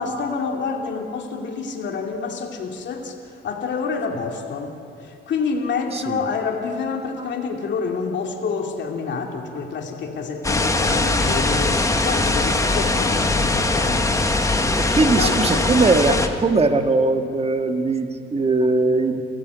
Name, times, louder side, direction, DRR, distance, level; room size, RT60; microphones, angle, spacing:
voice 1, 0.0-14.1 15.1-15.8, left 5 dB, 65° left, 2 dB, 2.6 m, -28 dB
sound 1, 10.4-16.3, left 2 dB, 15° left, 1.8 m, -21 dB
voice 2, 14.8-19.2, right 3 dB, 30° right, 6 dB, 1.9 m, -20 dB
30.0 x 15.0 x 8.2 m, 2.6 s
cardioid pair, 90°, 20 cm